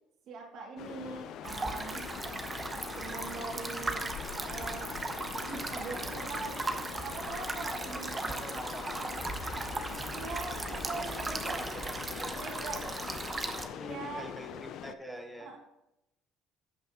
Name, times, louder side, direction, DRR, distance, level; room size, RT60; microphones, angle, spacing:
voice 1, 0.3-2.1 2.9-4.0 4.5-4.9 5.4-8.7 10.1-11.6 12.4-13.0 13.8-14.3 15.4-15.6, right 4 dB, 65° right, -1 dB, 2.4 m, -42 dB
sound 1, 0.8-15.0, left 10 dB, 65° left, 0.4 m, -43 dB
sound 2, 1.4-13.7, right 2 dB, 20° right, 0.9 m, -37 dB
voice 2, 8.3-9.3 11.4-12.4 13.6-15.5, equal, ahead, 3 dB, 1.1 m, -45 dB
15.0 x 5.5 x 2.9 m, 0.88 s
cardioid pair, 105°, 0 cm